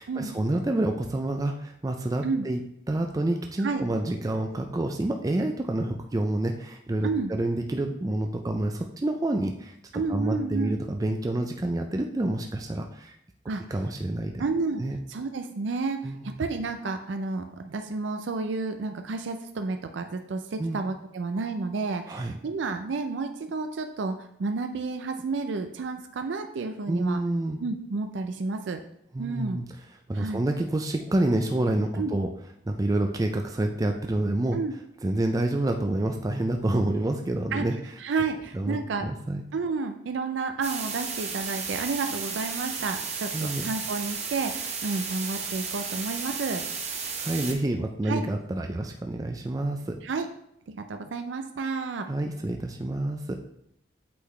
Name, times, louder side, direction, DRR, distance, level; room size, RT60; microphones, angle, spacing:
voice 1, 0.0-2.6 2.9-13.2 13.7-14.4 14.8-15.0 16.0-16.3 20.6-20.8 22.1-22.3 26.9-27.6 29.1-29.6 30.1-32.3 32.7-34.6 35.0-37.7 38.5-39.4 43.3-43.6 47.2-50.0 52.1-53.4, right 1 dB, 20° right, 4 dB, 0.4 m, -28 dB
voice 2, 9.9-10.8 13.5-13.6 14.4-14.8 15.1-27.2 27.6-28.8 29.2-29.6 30.1-30.4 32.0-32.1 34.5-34.7 37.5-37.7 38.0-39.1 39.5-46.6 48.1-48.2 50.0-50.3 50.7-52.1, right 4 dB, 85° right, 7 dB, 0.4 m, -31 dB
sound 1, 40.6-47.5, right 5 dB, 40° right, 0.9 m, -33 dB
8.4 x 3.9 x 3.2 m, 0.75 s
head